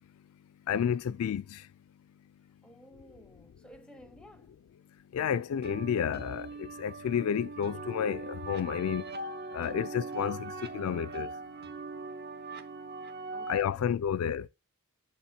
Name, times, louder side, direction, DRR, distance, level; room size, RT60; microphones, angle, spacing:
voice 1, 0.7-1.4 5.1-9.0 9.5-11.3 13.5-14.5, left 8 dB, 80° left, 0.3 m, -31 dB
voice 2, 2.6-4.6 13.3-13.9, equal, 5° left, 0.5 m, -54 dB
sound 1, 5.6-13.6, right 3 dB, 45° right, 0.6 m, -41 dB
8.4 x 3.8 x 4.3 m
head